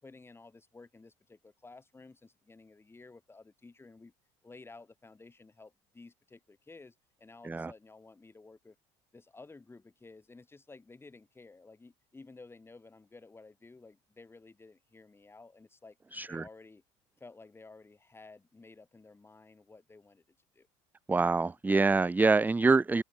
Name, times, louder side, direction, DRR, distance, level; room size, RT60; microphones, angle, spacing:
voice 1, 0.0-4.1 4.4-8.8 9.1-16.0 16.3-16.8 17.2-20.2 20.5-20.7, left 3 dB, 15° left, 5.7 m, -54 dB
voice 2, 16.1-16.4 21.1-23.0, right 3 dB, 10° right, 0.6 m, -25 dB
open air
supercardioid pair, 100°, 15 cm